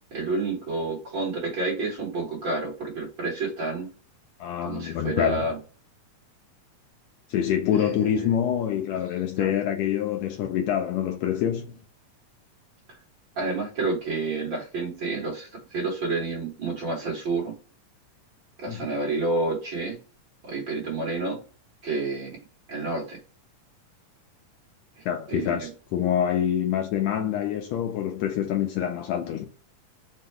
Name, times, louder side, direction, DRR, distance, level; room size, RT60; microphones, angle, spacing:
voice 1, 0.1-3.9 4.6-5.6 7.7-8.3 9.4-9.5 13.4-17.5 18.6-20.0 20.4-21.4 21.8-22.4 22.7-23.2 25.0-25.7, right 3 dB, 50° right, 1.7 m, -29 dB
voice 2, 4.4-5.5 7.3-11.8 18.7-18.9 25.0-29.4, left 9 dB, 80° left, 1.6 m, -26 dB
5.5 x 2.2 x 3.3 m
omnidirectional pair, 3.3 m